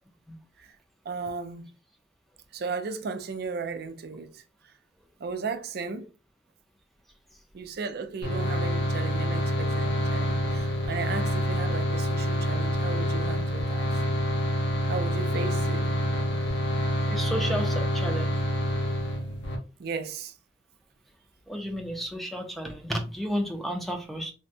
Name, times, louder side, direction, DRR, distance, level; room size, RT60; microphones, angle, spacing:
voice 1, 1.1-1.7 2.5-4.4 5.2-6.1 7.5-13.9 14.9-15.9 19.8-20.3, right 4 dB, 60° right, 0.4 m, -35 dB
sound 1, 8.2-19.6, equal, 85° left, 0.9 m, -27 dB
voice 2, 17.1-18.4 21.5-24.3, equal, ahead, 0.5 m, -32 dB
3.4 x 2.1 x 2.7 m
head